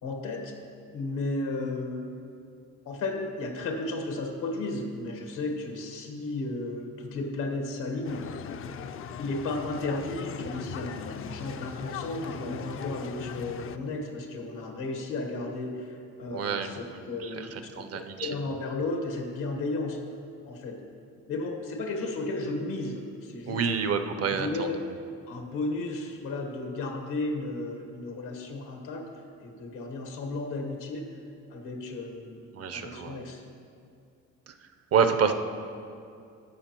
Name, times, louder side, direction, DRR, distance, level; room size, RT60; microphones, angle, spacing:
voice 1, 0.0-0.5 0.9-2.1 2.8-8.5 9.2-20.0 20.4-20.8 21.3-23.7 24.3-24.8 25.3-29.0 29.4-31.0 31.5-32.4 32.7-33.4, left 2 dB, 90° left, 3 dB, 1.3 m, -34 dB
sound 1, 8.0-13.8, left 7 dB, 45° left, 0.4 m, -39 dB
voice 2, 16.3-16.8 17.2-18.3 23.5-24.7 32.5-33.2 34.5-34.6 34.9-35.3, right 6 dB, 50° right, 8 dB, 0.6 m, -28 dB
15.0 x 5.4 x 2.9 m, 2.5 s
cardioid pair, 90°, 30 cm